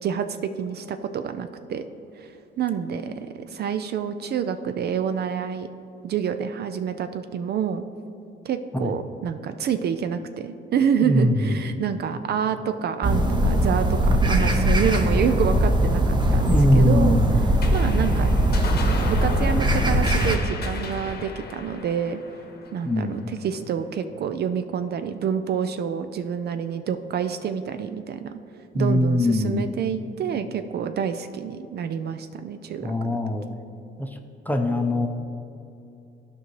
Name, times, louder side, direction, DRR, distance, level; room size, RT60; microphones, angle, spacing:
voice 1, 0.0-1.9 2.2-5.7 6.0-7.8 8.4-17.2 17.7-18.3 19.0-22.2 22.7-28.4 28.7-33.2, right 7 dB, 55° right, 9 dB, 0.4 m, -28 dB
voice 2, 11.0-11.6 16.5-17.4 22.8-23.3 28.7-29.7 32.8-33.5 34.0-34.2 34.5-35.1, left 1 dB, 10° left, 5 dB, 0.6 m, -22 dB
sound 1, 13.0-20.4, right 1 dB, 20° right, 0.8 m, -20 dB
sound 2, 17.6-24.4, left 4 dB, 55° left, 0.9 m, -37 dB
12.5 x 5.2 x 3.2 m, 2.7 s
cardioid pair, 90°, 20 cm